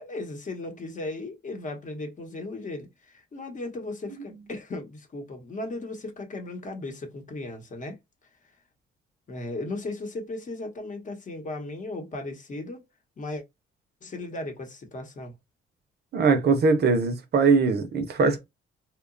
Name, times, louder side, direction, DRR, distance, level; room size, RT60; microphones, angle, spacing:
voice 1, 0.0-8.0 9.3-12.9 13.2-13.4 14.0-15.4, left 2 dB, 40° left, 0.9 m, -36 dB
voice 2, 16.1-18.4, right 4 dB, 55° right, 0.6 m, -21 dB
2.8 x 2.2 x 2.4 m
cardioid pair, 90°, 20 cm